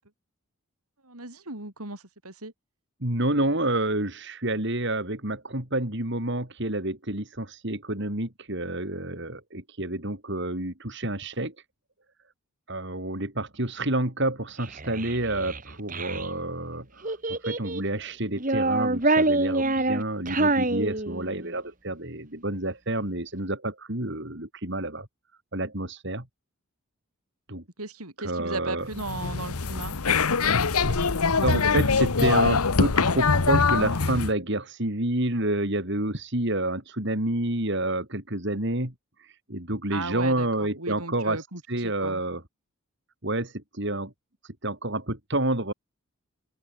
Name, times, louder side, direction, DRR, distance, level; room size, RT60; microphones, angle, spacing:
voice 1, 1.0-2.5 27.8-30.0 39.9-42.2, right 3 dB, 85° right, 6.2 m, -37 dB
voice 2, 3.0-11.5 12.7-25.1 25.5-26.3 27.5-27.6 28.2-28.9 31.3-38.9 39.2-42.4 43.2-44.1 44.6-45.7, right 1 dB, 55° right, 4.0 m, -29 dB
Child speech kid speaking, 14.6-16.3 17.0-17.9 18.4-21.5, right 2 dB, 35° right, 2.4 m, -26 dB
sound 1, 28.9-34.3, left 4 dB, 85° left, 1.1 m, -23 dB
open air
head